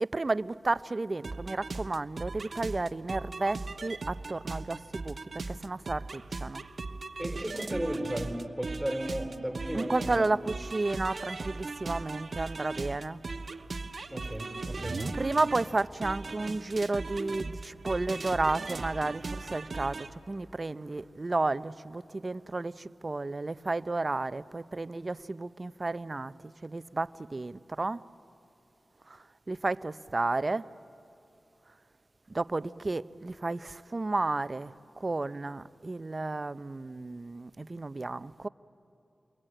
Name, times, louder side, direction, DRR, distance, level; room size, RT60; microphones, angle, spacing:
voice 1, 0.0-5.1 5.5-6.6 9.7-13.2 15.2-20.0 20.3-22.7 23.0-26.3 26.6-28.0 29.5-30.6 32.3-34.7 35.0-38.5, right 2 dB, 45° right, 0.6 m, -32 dB
sound 1, 1.2-20.1, right 3 dB, 60° right, 1.0 m, -38 dB
voice 2, 7.2-10.3 14.1-15.0, equal, ahead, 4.1 m, -35 dB
28.0 x 23.0 x 9.0 m
cardioid pair, 45°, 0 cm